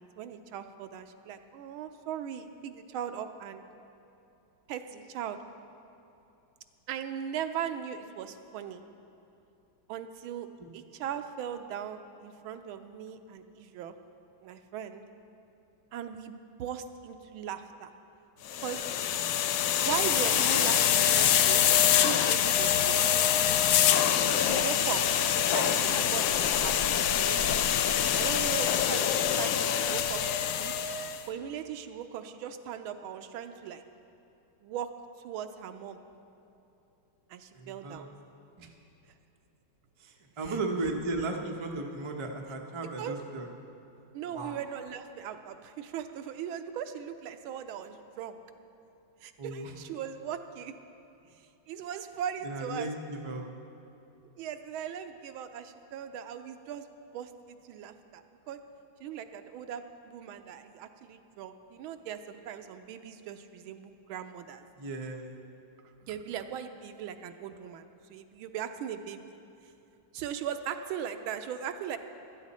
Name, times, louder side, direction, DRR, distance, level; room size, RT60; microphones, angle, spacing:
voice 1, 0.0-3.6 4.7-5.4 6.9-8.8 9.9-10.5 10.7-14.0 14.4-15.0 15.9-17.9 18.6-18.8 19.8-23.1 24.3-25.0 25.4-26.8 27.1-27.4 28.1-30.2 30.5-30.7 31.3-33.8 34.6-34.9 35.2-36.0 37.3-38.1 40.4-40.6 43.0-43.2 44.1-48.4 49.2-50.7 51.7-52.9 54.3-56.9 57.1-58.6 59.0-64.6 66.0-69.2 70.1-72.0, right 9 dB, 80° right, 8 dB, 1.4 m, -39 dB
sound 1, 18.5-31.2, left 9 dB, 90° left, 0.8 m, -25 dB
voice 2, 37.5-38.1 38.6-38.7 40.0-43.5 44.3-44.6 49.4-49.7 52.4-53.4 64.8-65.4, right 2 dB, 50° right, 1 dB, 0.3 m, -35 dB
15.0 x 12.5 x 4.2 m, 2.8 s
omnidirectional pair, 2.3 m